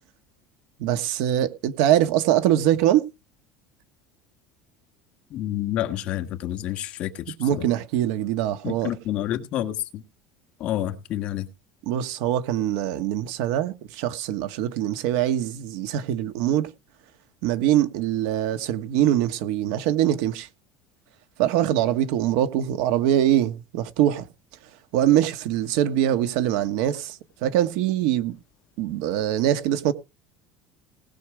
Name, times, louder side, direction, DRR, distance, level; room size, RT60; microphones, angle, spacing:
voice 1, 0.8-3.0 7.4-8.9 11.8-16.7 17.4-20.5 21.4-24.3 24.9-28.4 28.8-29.9, right 12 dB, 65° right, 1.5 m, -23 dB
voice 2, 5.3-7.6 8.6-10.0 10.6-11.5, left 13 dB, 40° left, 1.6 m, -29 dB
19.5 x 6.4 x 5.0 m
cardioid pair, 175°, 3 cm